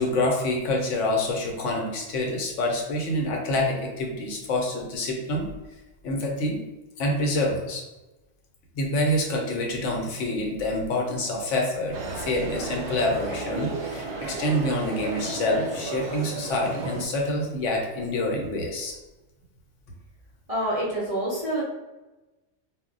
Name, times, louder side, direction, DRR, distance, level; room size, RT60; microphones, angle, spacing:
voice 1, 0.0-5.5 6.0-6.6 7.0-7.8 8.7-18.9, left 1 dB, 85° left, 0 dB, 1.0 m, -27 dB
sound 1, 11.9-17.0, right 3 dB, 75° right, 0.8 m, -33 dB
voice 2, 20.5-21.6, right 1 dB, 40° right, -6 dB, 0.5 m, -27 dB
2.2 x 2.1 x 3.7 m, 1.1 s
omnidirectional pair, 1.2 m